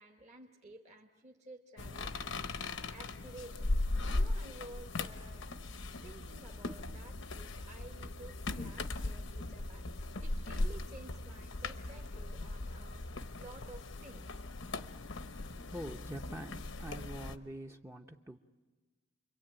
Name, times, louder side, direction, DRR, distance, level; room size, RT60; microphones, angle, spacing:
voice 1, 0.0-2.2 2.9-3.7 4.1-5.4 6.0-13.1 13.4-14.3, right 2 dB, 35° right, 0 dB, 1.2 m, -53 dB
sound 1, 1.8-17.4, left 2 dB, 70° left, 0.9 m, -38 dB
voice 2, 15.6-18.4, right 1 dB, 15° right, 3 dB, 0.8 m, -45 dB
29.0 x 23.5 x 8.8 m, 1.3 s
head